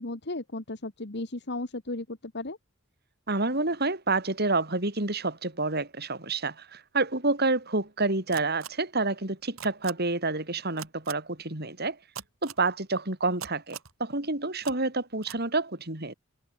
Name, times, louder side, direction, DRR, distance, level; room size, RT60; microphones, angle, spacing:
voice 1, 0.0-2.6, left 2 dB, 55° left, 1.6 m, -35 dB
voice 2, 3.3-12.0 12.4-16.1, right 3 dB, 50° right, 4.9 m, -28 dB
sound 1, 8.3-8.7 9.6-9.9 10.8-11.1 12.1-12.6 13.4-13.9 14.6-14.7 15.2-15.4, right 8 dB, 90° right, 3.8 m, -40 dB
head